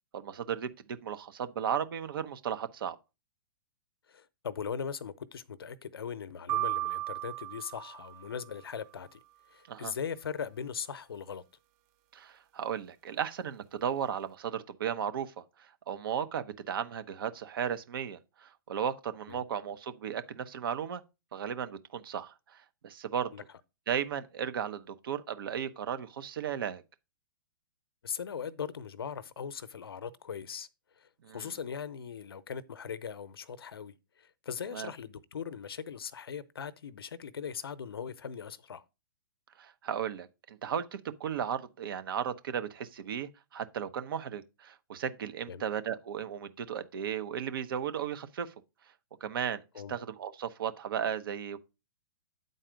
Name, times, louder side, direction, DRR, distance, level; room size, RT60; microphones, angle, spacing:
voice 1, 0.1-0.7 1.0-3.0 9.7-9.9 12.1-15.3 15.6-21.0 21.3-23.3 23.9-26.8 31.2-31.5 34.7-34.9 39.6-48.5 49.2-49.6 49.9-51.6, right 8 dB, 70° right, 0.9 m, -35 dB
voice 2, 4.1-9.2 9.5-11.4 19.3-19.5 23.3-23.4 28.0-30.7 31.0-31.1 31.3-38.8 45.5-45.6 49.7-49.9, left 7 dB, 80° left, 0.7 m, -39 dB
sound 1, 6.5-8.6, right 16 dB, 40° right, 0.6 m, -35 dB
9.1 x 4.1 x 5.1 m
hypercardioid pair, 115°, 12 cm